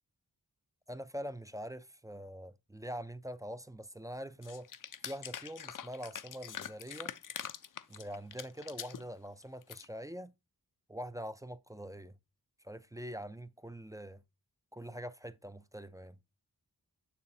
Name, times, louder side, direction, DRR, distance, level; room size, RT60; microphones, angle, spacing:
voice 1, 0.9-4.7 5.0-7.1 7.9-10.3 10.9-12.2 12.6-14.2 14.7-16.2, equal, 10° right, 0.4 m, -44 dB
sound 1, 4.4-9.0 9.4-9.9, left 9 dB, 55° left, 0.5 m, -44 dB
6.9 x 6.3 x 2.7 m
cardioid pair, 50°, 38 cm